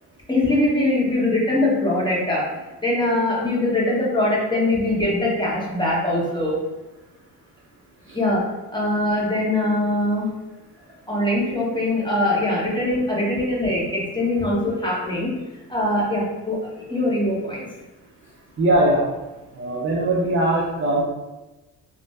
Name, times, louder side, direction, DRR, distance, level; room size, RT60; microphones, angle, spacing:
voice 1, 0.3-6.6 8.1-8.4 8.7-10.4 11.1-15.4 15.7-17.6, left 1 dB, 10° left, -5 dB, 1.1 m, -22 dB
voice 2, 18.6-19.0 19.6-21.0, right 1 dB, 30° right, -5 dB, 0.5 m, -20 dB
3.1 x 2.2 x 2.6 m, 1.1 s
supercardioid pair, 55°, 46 cm